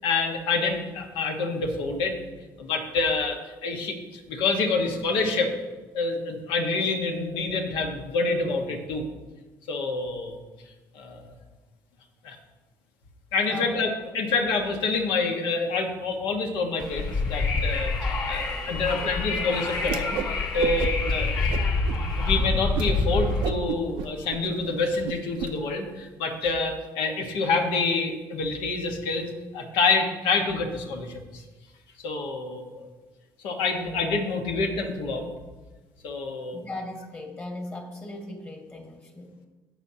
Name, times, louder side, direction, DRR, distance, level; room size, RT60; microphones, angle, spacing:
voice 1, 0.0-2.1 2.6-5.5 5.9-9.0 9.7-10.4 10.9-11.2 12.2-12.4 13.3-20.2 20.5-21.3 21.9-31.4 32.0-32.9 33.4-35.3 36.0-36.7, left 3 dB, 80° left, 3 dB, 1.4 m, -27 dB
voice 2, 13.5-13.9 36.5-39.5, left 2 dB, 30° left, 2 dB, 1.8 m, -38 dB
Wind, 16.8-23.5, left 3 dB, 55° left, 2.6 m, -26 dB
Whoosh swoosh swish, 19.8-20.3 20.6-21.1 21.5-22.0 22.4-22.5 22.7-22.9 23.3-25.5, right 9 dB, 80° right, 0.6 m, -32 dB
17.5 x 6.1 x 2.9 m, 1.2 s
supercardioid pair, 85°, 8 cm